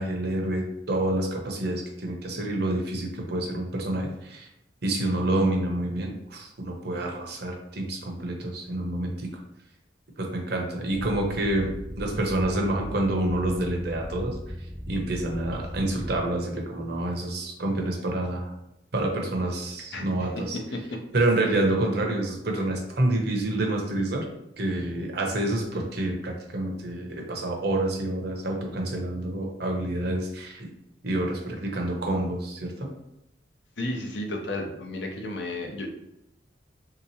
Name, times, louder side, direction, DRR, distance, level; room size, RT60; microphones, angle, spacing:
voice 1, 0.0-4.5 4.8-9.3 10.2-11.7 12.0-14.5 14.9-18.5 18.9-20.6 21.1-24.3 24.6-30.7 31.0-32.9, right 1 dB, 60° right, 1 dB, 0.8 m, -28 dB
sound 1, 10.9-16.2, equal, 5° right, 0.4 m, -38 dB
voice 2, 19.9-21.0 33.8-35.9, left 1 dB, 70° left, 2 dB, 0.6 m, -33 dB
3.4 x 2.9 x 2.8 m, 0.86 s
head